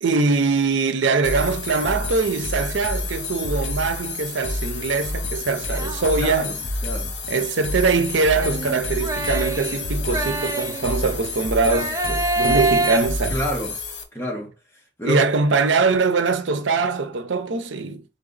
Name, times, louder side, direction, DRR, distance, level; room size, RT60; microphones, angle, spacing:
voice 1, 0.0-6.6 7.3-13.4 15.0-18.0, right 4 dB, 85° right, 0.6 m, -22 dB
sound 1, 1.2-14.0, left 2 dB, 75° left, 1.1 m, -29 dB
sound 2, 5.7-6.5 8.3-11.2 11.6-13.0, right 2 dB, 20° right, 0.3 m, -26 dB
voice 2, 6.1-6.5 6.8-7.4 13.3-13.8 14.1-14.5 15.0-15.2, equal, 15° left, 1.2 m, -28 dB
4.0 x 3.4 x 3.9 m
head